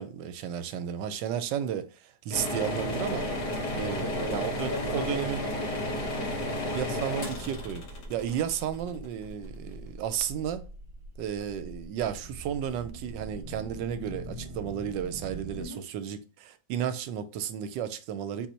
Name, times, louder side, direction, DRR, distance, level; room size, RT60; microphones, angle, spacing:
voice 1, 0.0-3.3 3.7-5.5 6.7-10.6 11.2-18.5, right 9 dB, 75° right, 1.2 m, -33 dB
sound 1, 2.3-9.2, left 1 dB, 65° left, 1.6 m, -32 dB
sound 2, 3.1-15.7, right 1 dB, 45° right, 0.4 m, -44 dB
voice 2, 4.0-7.2 15.5-15.8, left 3 dB, 10° left, 1.3 m, -42 dB
4.1 x 2.7 x 4.3 m
omnidirectional pair, 2.0 m